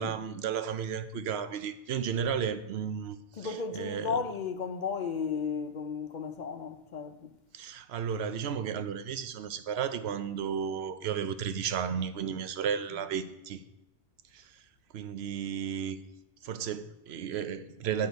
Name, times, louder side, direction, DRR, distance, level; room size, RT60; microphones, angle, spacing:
voice 1, 0.0-4.2 7.5-13.6 14.3-14.6 14.9-16.0 16.4-18.1, right 7 dB, 85° right, 0.9 m, -33 dB
voice 2, 3.4-7.3, left 6 dB, 55° left, 0.6 m, -34 dB
9.5 x 6.4 x 4.0 m
omnidirectional pair, 1.0 m